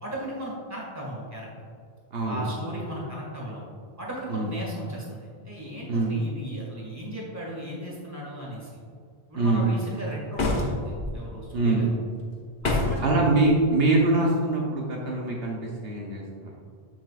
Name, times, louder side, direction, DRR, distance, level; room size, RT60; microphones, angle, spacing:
voice 1, 0.0-1.5 2.3-3.6 4.0-8.8 9.3-12.0 12.6-13.0, equal, 15° right, -4 dB, 1.8 m, -36 dB
voice 2, 2.1-2.5 4.3-4.5 5.9-6.1 9.3-9.6 11.5-11.8 13.0-16.5, right 2 dB, 70° right, -2 dB, 1.1 m, -24 dB
sound 1, 10.3-11.1 12.6-13.1, left 2 dB, 55° left, 1.1 m, -26 dB
7.6 x 7.4 x 2.4 m, 2.2 s
omnidirectional pair, 1.0 m